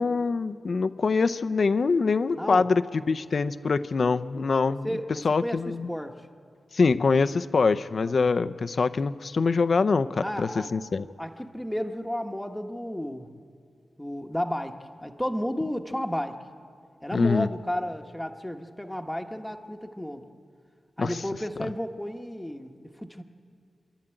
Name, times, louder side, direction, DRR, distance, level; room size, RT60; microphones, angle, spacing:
voice 1, 0.0-4.9 5.2-5.9 6.7-11.1 17.1-17.5 21.0-21.1, left 4 dB, 50° left, 12 dB, 0.6 m, -24 dB
voice 2, 2.3-2.7 4.3-6.3 8.0-8.2 10.2-10.7 11.2-13.3 14.0-16.3 17.0-20.2 21.0-23.2, equal, 5° left, 4 dB, 1.2 m, -33 dB
29.0 x 11.5 x 9.0 m, 2.2 s
wide cardioid pair, 130°, 0 cm